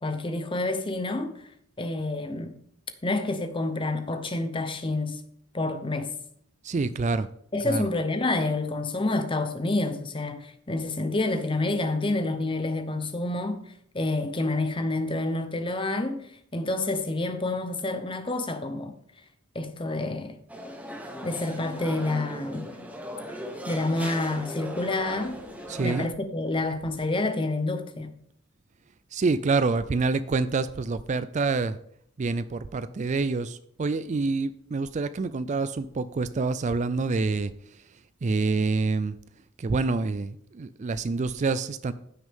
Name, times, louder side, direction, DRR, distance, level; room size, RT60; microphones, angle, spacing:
voice 1, 0.0-1.5 1.8-2.6 3.0-5.2 5.5-6.1 7.5-13.6 13.9-18.9 19.5-20.4 21.2-22.8 23.7-25.4 25.8-28.1, left 2 dB, 25° left, 0.9 m, -28 dB
voice 2, 6.6-7.3 7.6-7.9 25.7-26.1 29.1-31.8 32.2-37.5 38.2-39.2 39.6-41.9, right 3 dB, 35° right, 0.3 m, -27 dB
sound 1, 20.5-26.1, equal, 5° right, 1.0 m, -38 dB
15.0 x 6.1 x 3.6 m
head